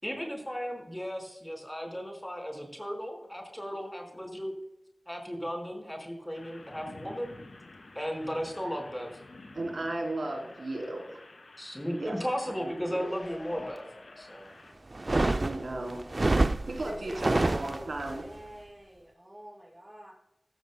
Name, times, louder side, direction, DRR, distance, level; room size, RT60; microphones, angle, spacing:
voice 1, 0.0-4.5 5.0-7.4 7.9-9.1 11.6-13.8 14.2-14.5, equal, 10° left, 2 dB, 4.8 m, -35 dB
sound 1, 6.3-14.7, left 2 dB, 85° left, 2.2 m, -51 dB
voice 2, 9.5-11.2 12.0-12.2 12.6-13.1 15.4-16.0 16.3-18.2, right 2 dB, 90° right, 2 dB, 3.2 m, -35 dB
sound 2, 12.8-14.9 15.3-15.4, left 2 dB, 70° left, 1.3 m, -48 dB
sound 3, 14.9-18.2, right 2 dB, 45° right, 0.4 m, -27 dB
voice 3, 16.9-20.1, right 1 dB, 15° right, -3 dB, 5.5 m, -48 dB
15.5 x 15.5 x 2.2 m, 0.88 s
wide cardioid pair, 60°, 0 cm